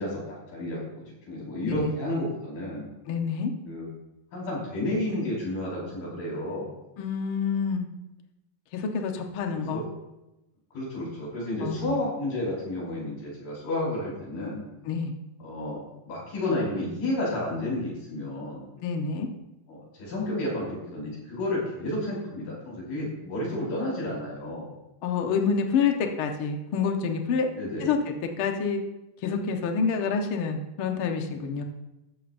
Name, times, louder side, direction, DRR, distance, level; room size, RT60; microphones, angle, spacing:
voice 1, 0.0-2.9 3.7-3.9 4.3-6.7 9.5-9.9 10.7-14.6 15.4-18.6 19.7-24.7 27.6-27.9, left 1 dB, 90° left, -6 dB, 6.8 m, -31 dB
voice 2, 3.1-3.5 7.0-7.9 8.7-9.8 11.6-12.0 14.8-15.1 18.8-19.3 25.0-27.5 27.8-28.8 29.2-31.6, left 5 dB, 70° left, 3 dB, 1.2 m, -27 dB
14.0 x 13.5 x 2.6 m, 0.94 s
omnidirectional pair, 4.1 m